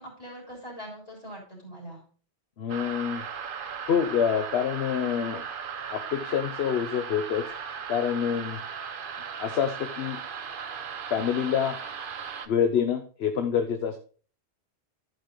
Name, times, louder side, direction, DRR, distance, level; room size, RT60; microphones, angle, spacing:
voice 1, 0.0-2.0, equal, 35° left, -3 dB, 3.8 m, -42 dB
voice 2, 2.6-3.2 3.9-5.4 5.9-7.4 7.9-8.6 9.4-10.2 11.1-11.8 12.5-14.0, left 8 dB, 70° left, 7 dB, 0.9 m, -26 dB
sound 1, 2.7-12.5, right 6 dB, 55° right, 0.9 m, -37 dB
11.5 x 5.2 x 3.8 m, 0.40 s
omnidirectional pair, 1.1 m